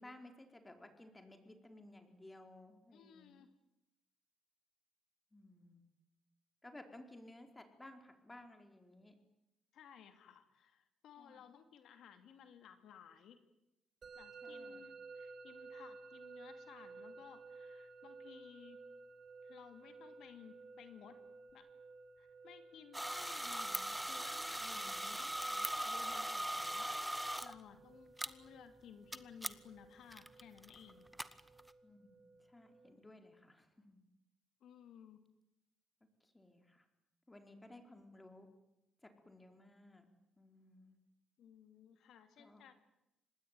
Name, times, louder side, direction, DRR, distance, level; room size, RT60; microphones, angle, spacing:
voice 1, 0.0-3.4 5.3-5.9 6.6-9.2 11.2-11.4 14.4-14.9 24.7-25.1 31.8-34.0 36.2-36.9 37.3-38.5 39.0-40.1 40.4-41.0 42.4-42.6, left 1 dB, 15° left, 6 dB, 4.6 m, -57 dB
voice 2, 2.9-3.5 9.7-13.4 14.1-18.8 19.4-21.2 21.5-21.6 22.2-31.1 34.6-35.2 41.4-42.7, left 8 dB, 75° left, 8 dB, 2.7 m, -58 dB
Musical instrument, 14.0-32.9, right 3 dB, 45° right, 5.2 m, -56 dB
sound 1, 22.9-27.5 28.2-28.3 29.1-29.2 29.4-29.5 30.1-31.7, right 1 dB, 5° right, 1.4 m, -40 dB
26.0 x 20.0 x 9.3 m, 0.88 s
cardioid pair, 90°, 0 cm